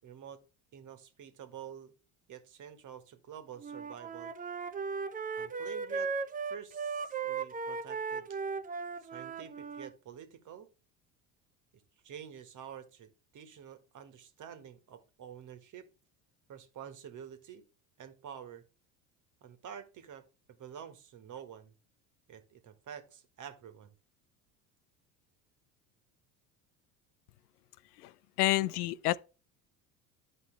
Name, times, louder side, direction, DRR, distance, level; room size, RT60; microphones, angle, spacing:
voice 1, 0.0-0.4 0.7-1.9 2.3-4.3 5.4-6.1 6.5-8.4 9.0-10.7 11.7-15.9 16.5-17.6 18.0-18.6 19.4-21.7 22.3-23.9, right 8 dB, 45° right, 1.6 m, -48 dB
Wind instrument woodwind instrument, 3.6-9.9, right 5 dB, 20° right, 0.6 m, -37 dB
voice 2, 28.0-29.2, left 17 dB, 85° left, 0.5 m, -29 dB
10.0 x 5.2 x 3.3 m
hypercardioid pair, 75°, 44 cm